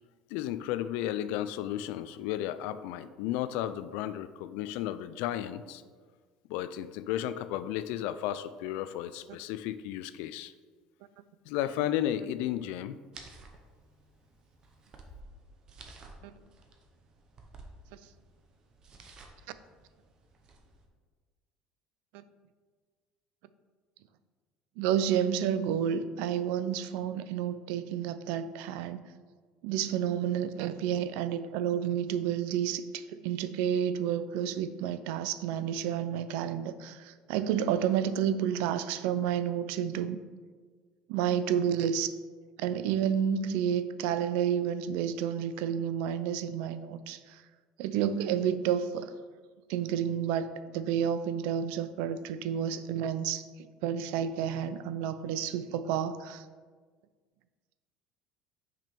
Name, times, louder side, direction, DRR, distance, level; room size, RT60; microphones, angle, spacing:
voice 1, 0.3-5.8 6.5-10.5 11.5-13.0, left 12 dB, 75° left, 13 dB, 0.3 m, -33 dB
sound 1, 13.1-20.9, right 3 dB, 30° right, 0.7 m, -53 dB
voice 2, 24.8-29.0 29.6-40.2 41.1-42.1 42.6-47.4 47.8-49.1 49.7-53.4 53.8-56.4, right 9 dB, 80° right, 13 dB, 0.4 m, -30 dB
6.0 x 5.1 x 4.4 m, 1.5 s
cardioid pair, 160°, 2 cm